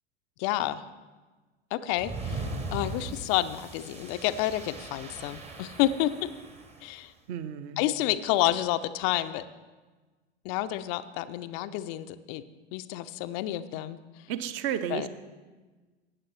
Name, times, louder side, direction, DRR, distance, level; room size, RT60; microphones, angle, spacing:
voice 1, 0.4-0.8 1.7-6.3 6.8-7.1 7.8-9.5 10.4-12.4 12.7-14.0 14.9-15.1, left 14 dB, 30° left, 10 dB, 0.4 m, -29 dB
sound 1, 2.0-6.9, right 2 dB, 20° right, 0.9 m, -39 dB
voice 2, 7.3-7.8 14.3-15.1, right 9 dB, 35° right, 13 dB, 0.7 m, -32 dB
16.0 x 9.1 x 3.1 m, 1.3 s
figure-of-eight pair, 85°, 34 cm